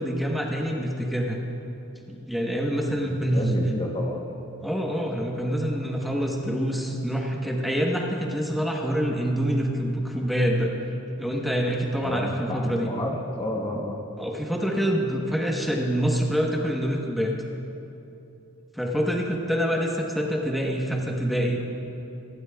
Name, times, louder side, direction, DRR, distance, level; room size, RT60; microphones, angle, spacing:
voice 1, 0.0-1.4 2.1-3.4 4.6-10.7 11.2-12.9 14.2-17.4 18.7-21.6, equal, ahead, -1 dB, 1.0 m, -26 dB
voice 2, 3.0-4.2 12.0-14.1, left 1 dB, 25° left, 0 dB, 0.9 m, -31 dB
25.0 x 12.0 x 2.3 m, 2.9 s
head